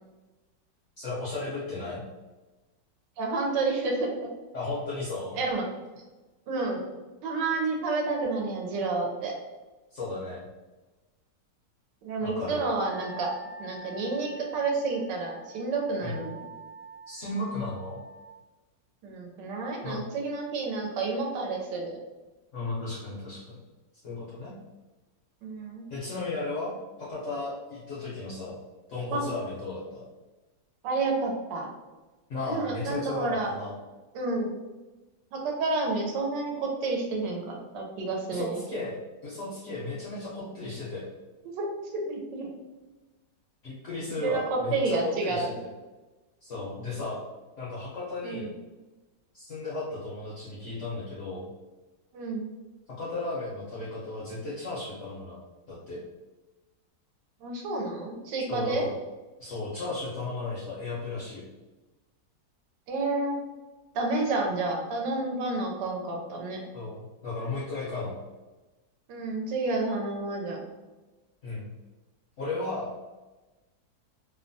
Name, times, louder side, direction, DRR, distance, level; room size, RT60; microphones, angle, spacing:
voice 1, 1.0-2.0 4.5-5.4 9.9-10.5 12.2-12.7 16.0-16.3 17.1-18.0 19.8-20.0 22.5-23.6 24.0-24.6 25.9-26.7 27.0-28.6 28.9-30.0 32.3-33.7 38.3-41.1 43.6-45.7 46.4-47.2 47.6-48.5 49.3-51.5 52.9-55.4 55.7-56.0 58.5-58.9 59.4-61.5 66.7-68.2 71.4-71.7 72.4-72.9, left 2 dB, 65° left, -7 dB, 0.7 m, -35 dB
voice 2, 3.2-4.1 5.3-5.6 6.5-6.8 7.2-9.3 12.0-13.3 13.6-16.4 19.0-22.0 25.4-25.8 29.1-29.2 30.8-31.7 32.5-33.5 34.1-34.6 35.3-38.8 41.5-42.5 44.2-45.5 48.2-48.5 52.1-52.5 57.4-58.9 62.9-63.4 63.9-66.6 69.1-70.6, right 3 dB, 75° right, 0 dB, 1.2 m, -30 dB
Wind instrument woodwind instrument, 12.7-18.3, right 2 dB, 40° right, 0.9 m, -46 dB
3.0 x 2.1 x 2.6 m, 1.2 s
omnidirectional pair, 2.0 m